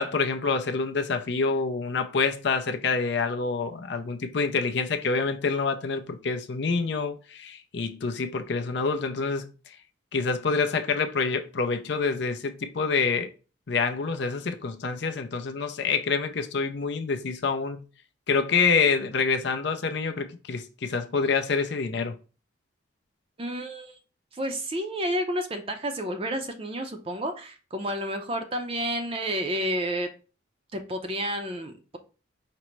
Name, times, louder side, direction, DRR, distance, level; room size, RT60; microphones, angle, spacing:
voice 1, 0.0-9.8 10.1-13.3 13.7-17.9 18.3-22.2, left 4 dB, 60° left, 0.5 m, -27 dB
voice 2, 23.4-23.9 24.3-30.1 30.7-32.0, equal, 30° right, 0.5 m, -30 dB
5.1 x 2.1 x 4.4 m
head